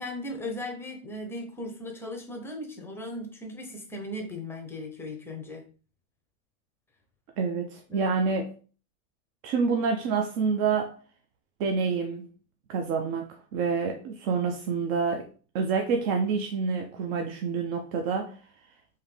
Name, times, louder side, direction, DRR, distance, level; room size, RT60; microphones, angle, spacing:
voice 1, 0.0-5.6 7.9-8.1, left 1 dB, 5° left, 0.6 m, -37 dB
voice 2, 7.4-8.5 9.4-11.0 11.6-12.2 12.7-15.3 15.5-18.4, right 5 dB, 40° right, 0.5 m, -27 dB
3.7 x 2.7 x 3.3 m
supercardioid pair, 130°, 43 cm